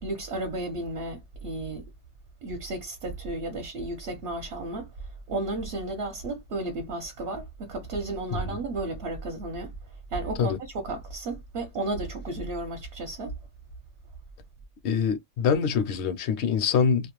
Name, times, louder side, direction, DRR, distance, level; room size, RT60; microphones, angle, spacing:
voice 1, 0.0-1.8 2.4-4.9 5.3-9.7 10.1-13.4, right 2 dB, 60° right, 0.9 m, -33 dB
voice 2, 14.8-17.1, left 6 dB, 70° left, 0.8 m, -25 dB
2.4 x 2.1 x 2.9 m
omnidirectional pair, 1.2 m